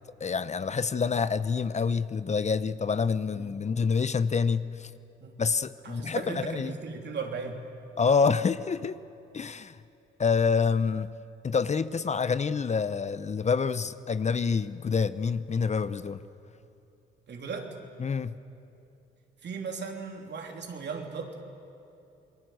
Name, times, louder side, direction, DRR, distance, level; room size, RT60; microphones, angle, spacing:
voice 1, 0.2-4.9 5.4-6.7 8.0-9.0 9.3-9.8 10.2-11.1 11.4-16.2 18.0-18.3, left 5 dB, 35° left, 0.8 m, -27 dB
voice 2, 5.8-7.6 17.3-17.7 19.4-21.3, right 5 dB, 60° right, 3.3 m, -37 dB
28.0 x 20.5 x 7.9 m
supercardioid pair, 65°, 20 cm